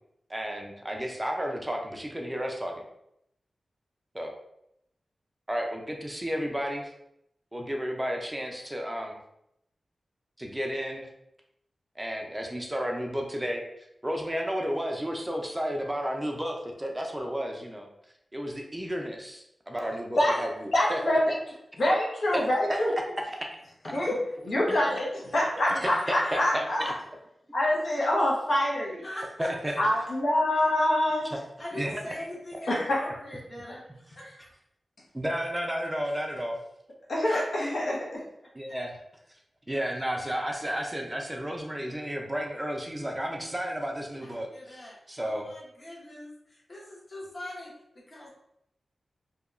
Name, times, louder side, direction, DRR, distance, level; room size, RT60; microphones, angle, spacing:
voice 1, 0.3-2.8 4.1-4.3 5.5-6.9 7.5-9.2 10.4-11.1 12.0-17.9 18.3-21.1 22.3-22.4 22.7-22.8 23.8-24.0 24.7-24.8 25.6-26.9 29.4-29.8 31.7-32.2 32.5-32.6 35.1-36.6 38.5-39.0 39.7-45.5, equal, 15° right, 1 dB, 0.4 m, -32 dB
voice 2, 20.7-21.2 21.8-22.9 23.9-24.1 24.4-25.1 25.3-26.9 27.5-29.1 29.8-31.3 32.7-33.0 37.1-38.2, left 1 dB, 80° left, -5 dB, 0.7 m, -25 dB
voice 3, 25.8-26.4 29.0-29.5 30.5-30.7 31.6-34.5 37.2-37.4 38.4-38.7 44.2-48.3, left 1 dB, 45° left, -4 dB, 1.0 m, -41 dB
2.7 x 2.2 x 2.4 m, 0.79 s
cardioid pair, 60°, 0 cm